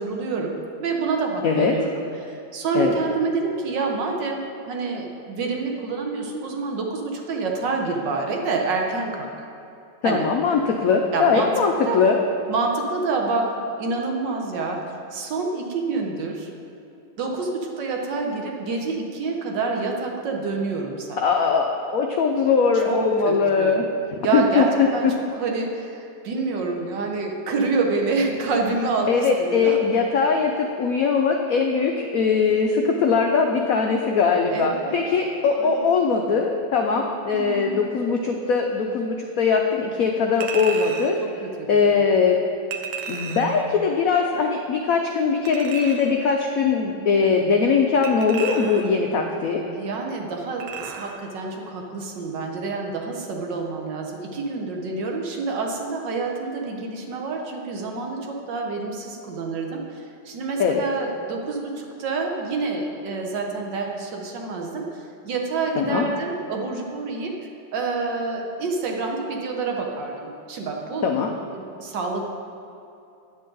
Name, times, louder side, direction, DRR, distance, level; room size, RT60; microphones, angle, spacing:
voice 1, 0.0-9.3 10.0-10.3 11.1-11.5 11.8-12.0 12.5-14.8 15.1-16.5 17.2-21.2 22.9-23.8 24.2-29.8 34.5-35.0 35.5-35.9 37.3-37.8 41.2-41.8 49.7-67.3 67.7-71.0 71.5-72.2, right 3 dB, 65° right, 1 dB, 1.6 m, -27 dB
voice 2, 1.4-1.7 2.7-3.0 10.0-12.2 21.2-23.8 24.3-24.9 29.1-41.2 41.7-42.4 43.1-49.6 60.6-60.8 65.8-66.0 71.0-71.3, left 5 dB, 85° left, 2 dB, 0.7 m, -21 dB
Chink clink, 40.4-41.2 42.7-43.6 45.5-46.2 48.0-49.0 50.6-51.2 51.6-51.7, right 6 dB, 85° right, 1.5 m, -34 dB
10.0 x 7.9 x 3.8 m, 2.8 s
omnidirectional pair, 2.2 m